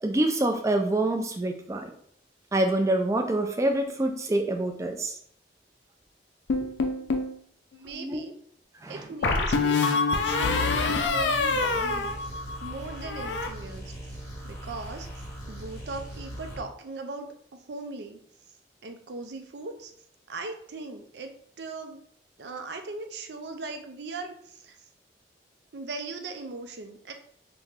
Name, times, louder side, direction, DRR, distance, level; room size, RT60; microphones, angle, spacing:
voice 1, 0.0-1.9 2.5-5.2 6.6-6.7 7.9-8.2 8.8-9.0, right 1 dB, 15° right, 4 dB, 0.3 m, -26 dB
sound 1, 6.5-7.3 9.2-12.7 13.0-13.5, left 4 dB, 90° left, 0.4 m, -26 dB
voice 2, 7.7-8.3 8.9-12.1 12.6-14.2 14.4-17.3 17.5-18.2 18.8-19.9 20.3-22.0 22.4-24.8 25.7-27.1, right 3 dB, 75° right, 5 dB, 0.5 m, -39 dB
sound 2, 11.1-16.6, right 1 dB, 20° left, 0.8 m, -40 dB
2.9 x 2.7 x 3.6 m, 0.64 s
head